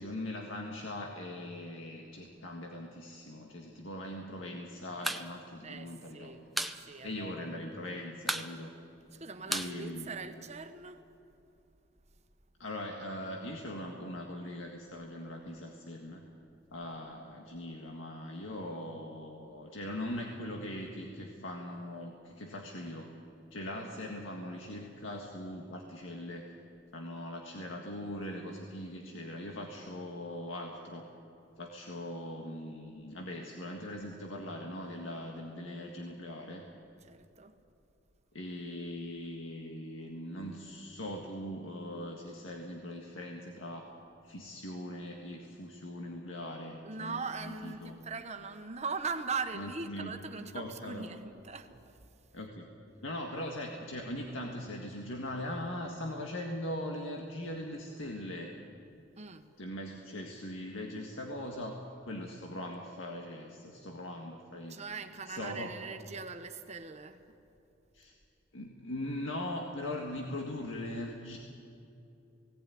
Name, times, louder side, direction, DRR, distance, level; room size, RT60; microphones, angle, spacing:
voice 1, 0.0-6.3 7.0-8.7 9.5-10.1 12.6-16.2 16.7-23.1 23.5-26.5 26.9-31.1 31.6-36.7 38.3-43.9 44.2-48.0 49.5-50.1 50.5-51.1 52.3-52.7 53.0-58.5 59.6-64.8 65.3-65.7 67.9-68.1 68.5-71.4, left 1 dB, 85° left, 1.8 m, -40 dB
sound 1, 4.9-5.3 5.5-5.6 5.9-6.8 7.1-7.2 7.5-7.9 8.2-10.6, right 1 dB, ahead, 0.7 m, -35 dB
voice 2, 5.6-7.6 9.1-11.1 37.0-37.5 46.8-52.0 59.2-59.7 64.7-67.2, right 4 dB, 35° right, 1.2 m, -41 dB
18.5 x 18.0 x 9.4 m
head